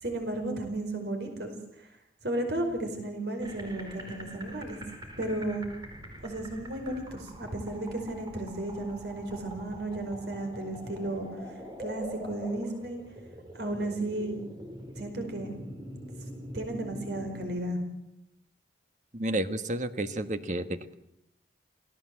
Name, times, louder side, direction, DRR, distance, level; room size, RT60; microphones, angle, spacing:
voice 1, 0.0-1.5 1.8-1.9 2.2-4.8 5.2-5.6 6.2-11.3 11.8-13.0 13.5-14.4 15.0-15.5 16.5-17.8, right 1 dB, 65° right, 5 dB, 5.1 m, -34 dB
sound 1, 3.4-17.5, equal, 25° right, 4.3 m, -44 dB
voice 2, 19.1-20.9, right 1 dB, 40° right, 10 dB, 1.5 m, -31 dB
28.0 x 18.0 x 7.8 m, 0.80 s
head